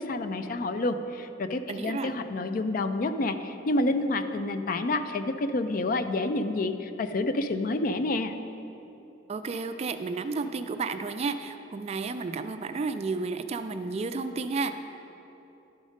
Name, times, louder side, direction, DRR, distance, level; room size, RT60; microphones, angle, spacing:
voice 1, 0.0-8.3, left 2 dB, 45° left, 9 dB, 0.4 m, -28 dB
voice 2, 1.7-2.1 9.3-14.7, right 4 dB, 35° right, 9 dB, 0.3 m, -32 dB
11.5 x 5.2 x 5.0 m, 3.0 s
head